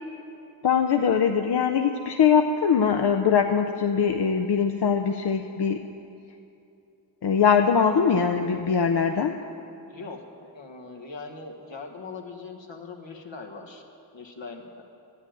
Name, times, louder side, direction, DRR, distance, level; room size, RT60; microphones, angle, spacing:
voice 1, 0.6-5.8 7.2-9.3, left 6 dB, 65° left, 5 dB, 0.6 m, -22 dB
voice 2, 9.9-10.3 10.5-13.8 14.1-14.8, left 4 dB, 80° left, 3 dB, 1.3 m, -40 dB
11.0 x 8.7 x 8.9 m, 2.8 s
wide cardioid pair, 75°, 44 cm